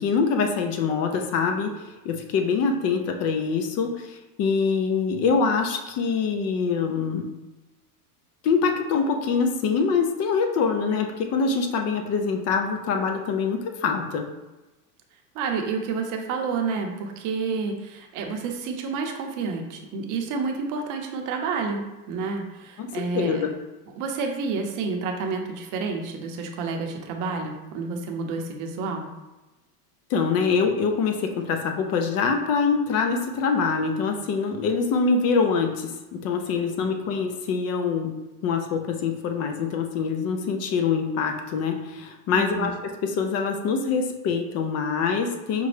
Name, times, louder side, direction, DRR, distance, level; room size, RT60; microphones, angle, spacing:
voice 1, 0.0-7.3 8.4-14.3 22.8-23.5 30.1-38.1 38.4-45.7, left 5 dB, 35° left, 5 dB, 0.4 m, -24 dB
voice 2, 15.3-23.4 24.0-29.1 36.7-36.8 42.3-42.7, right 4 dB, 40° right, 3 dB, 0.7 m, -29 dB
5.1 x 2.2 x 3.2 m, 1.1 s
supercardioid pair, 120°, 46 cm